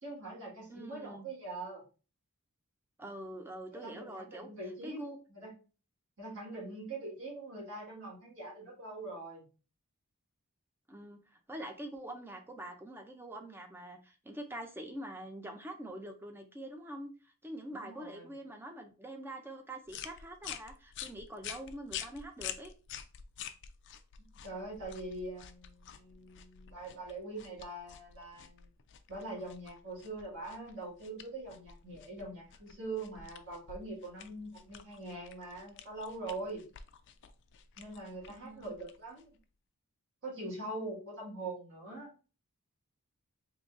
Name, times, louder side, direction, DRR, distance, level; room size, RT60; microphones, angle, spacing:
voice 1, 0.0-1.8 3.7-5.0 5.3-5.5 6.2-9.4 17.7-18.3 24.2-28.7 29.1-36.6 37.8-39.3 40.2-42.1, right 2 dB, 60° right, -5 dB, 1.7 m, -43 dB
voice 2, 0.7-1.3 3.0-4.5 4.8-5.2 10.9-22.7 38.3-38.8, right 1 dB, 10° right, 5 dB, 0.4 m, -45 dB
sound 1, 19.9-39.4, left 9 dB, 55° left, 0.3 m, -48 dB
3.8 x 2.9 x 2.4 m, 0.35 s
head